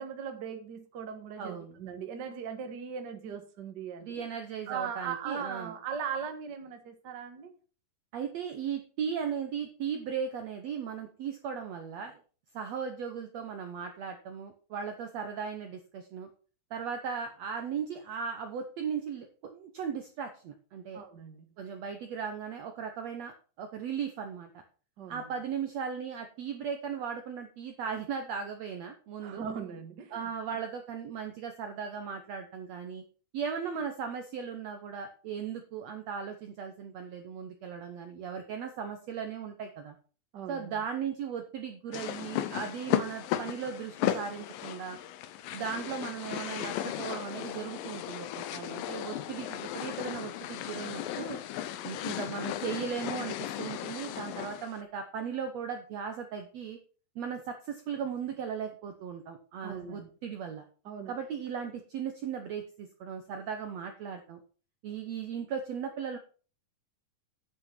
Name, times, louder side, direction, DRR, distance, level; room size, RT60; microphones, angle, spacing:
voice 1, 0.0-4.2 4.7-7.5 20.9-21.5 25.0-25.2 29.2-30.3 40.3-40.8 59.6-60.1 60.8-61.1, right 7 dB, 50° right, 6 dB, 1.4 m, -39 dB
voice 2, 1.4-1.8 4.0-5.8 8.1-12.2 12.5-16.3 16.7-21.0 21.6-23.3 23.6-24.5 25.1-29.4 30.1-33.0 33.3-40.0 40.5-45.0 45.5-51.4 51.8-56.8 57.2-60.6 61.1-64.4 64.8-66.2, right 7 dB, 70° right, 6 dB, 1.7 m, -37 dB
sound 1, 41.9-54.7, left 12 dB, 80° left, 2.5 m, -35 dB
9.5 x 6.2 x 6.0 m, 0.38 s
omnidirectional pair, 4.1 m